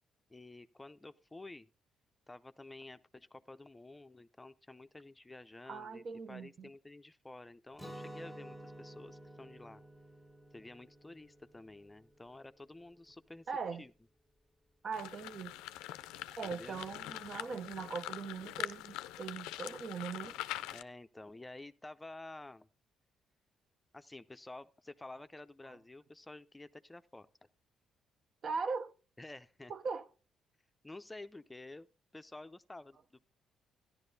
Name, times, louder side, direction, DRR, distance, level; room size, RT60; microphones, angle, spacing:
voice 1, 0.3-1.7 2.3-9.8 10.5-13.5 13.8-13.9 16.4-16.8 20.7-22.7 23.9-27.3 29.2-29.7 30.8-31.9 32.1-33.2, left 2 dB, 15° left, 0.5 m, -51 dB
voice 2, 5.7-6.7 13.5-13.8 14.8-15.6 16.4-20.4 28.4-28.9 29.7-30.0, right 5 dB, 55° right, 0.7 m, -40 dB
Guitar, 7.8-13.6, right 1 dB, 10° right, 1.7 m, -52 dB
sound 1, 14.9-20.8, left 16 dB, 85° left, 0.4 m, -43 dB
14.0 x 10.5 x 2.7 m
supercardioid pair, 60°, 0 cm